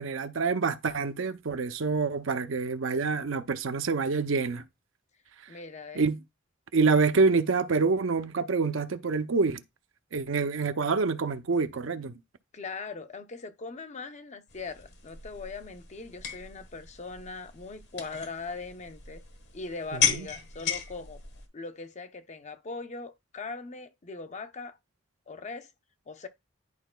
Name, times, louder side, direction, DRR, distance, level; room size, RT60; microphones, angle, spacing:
voice 1, 0.0-4.6 6.0-6.2 6.7-9.6 10.1-12.1 20.1-20.2, right 4 dB, 75° right, 0.6 m, -26 dB
voice 2, 5.5-6.1 12.5-19.2 19.5-21.2 21.5-24.8 25.3-25.7 26.1-26.3, left 4 dB, 35° left, 0.6 m, -40 dB
sound 1, 14.5-21.5, left 7 dB, 60° left, 1.4 m, -35 dB
11.0 x 4.6 x 2.2 m
head